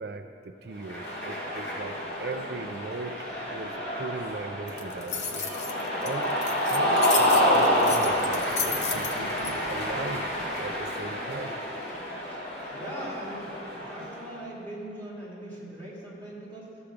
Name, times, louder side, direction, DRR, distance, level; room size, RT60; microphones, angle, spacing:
voice 1, 0.0-5.5 6.0-6.4 6.7-10.3 10.6-11.6, right 3 dB, 60° right, 6 dB, 0.4 m, -38 dB
Cheering, 0.8-14.2, equal, 85° left, 2.3 m, -28 dB
sound 1, 4.7-9.5, left 6 dB, 40° left, 0.6 m, -33 dB
voice 2, 12.7-16.8, right 1 dB, 10° left, -8 dB, 2.3 m, -40 dB
13.5 x 7.1 x 5.0 m, 2.9 s
head